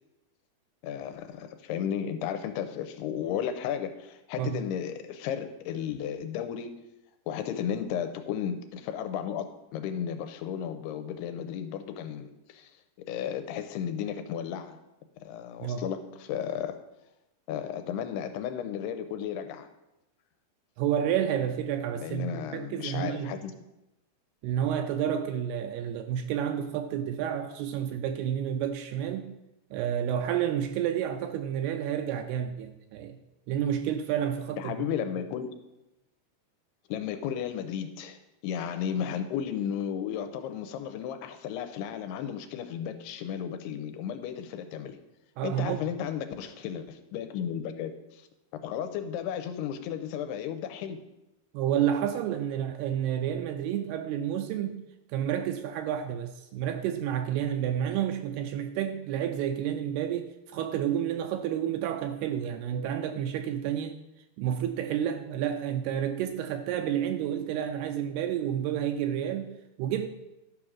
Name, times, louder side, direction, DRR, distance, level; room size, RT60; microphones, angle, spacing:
voice 1, 0.8-6.7 7.3-9.5 9.7-12.8 13.1-14.8 15.2-16.7 17.5-19.7 21.9-23.5 34.6-35.5 36.9-45.0 45.4-48.3 48.5-51.0, left 9 dB, 85° left, 2.7 m, -34 dB
voice 2, 20.8-23.3 24.4-29.4 29.7-33.2 33.5-34.8 45.4-45.8 51.5-54.9 55.1-64.0 64.4-70.1, right 10 dB, 80° right, 2.4 m, -30 dB
11.5 x 5.0 x 6.1 m
omnidirectional pair, 4.8 m